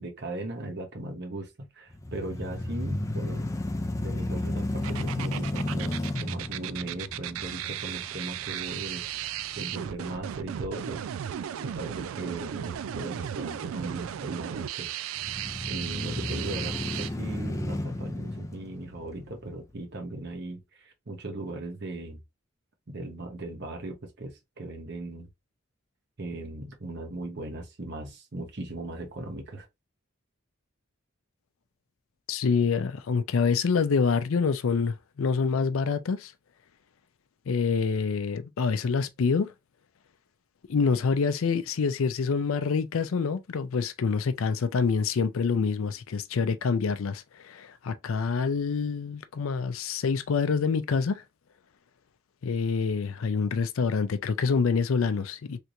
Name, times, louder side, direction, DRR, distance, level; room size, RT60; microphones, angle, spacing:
voice 1, 0.0-3.6 3.9-11.0 11.6-14.9 15.7-22.2 22.9-25.3 26.2-29.7, right 2 dB, 55° right, 1.0 m, -38 dB
sound 1, 1.9-10.0 10.5-10.6 15.2-19.6, left 1 dB, 15° left, 0.4 m, -33 dB
sound 2, 4.8-17.1, right 10 dB, 80° right, 0.3 m, -35 dB
voice 2, 32.3-36.3 37.5-39.5 40.7-51.2 52.4-55.6, left 5 dB, 80° left, 0.4 m, -26 dB
3.3 x 2.9 x 2.5 m
head